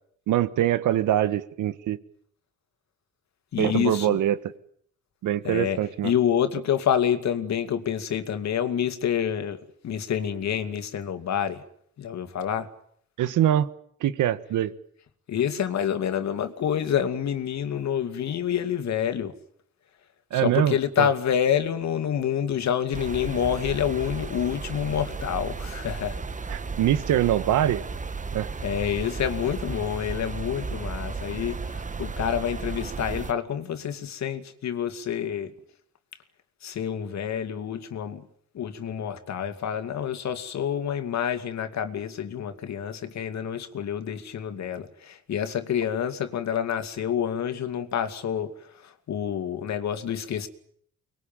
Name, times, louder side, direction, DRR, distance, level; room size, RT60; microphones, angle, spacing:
voice 1, 0.3-2.0 3.6-4.3 5.2-6.1 13.2-13.7 14.0-14.7 20.3-21.1 26.5-27.8 28.3-28.5, right 11 dB, 80° right, 1.6 m, -23 dB
voice 2, 3.5-4.2 5.4-5.8 6.0-9.6 9.8-11.6 12.0-12.7 15.3-19.3 20.3-26.2 28.6-35.5 36.6-38.2 38.5-48.5 48.8-50.5, left 9 dB, 65° left, 2.5 m, -28 dB
sound 1, 22.9-33.3, right 4 dB, 25° right, 1.4 m, -34 dB
24.5 x 21.0 x 9.1 m
cardioid pair, 90°, 30 cm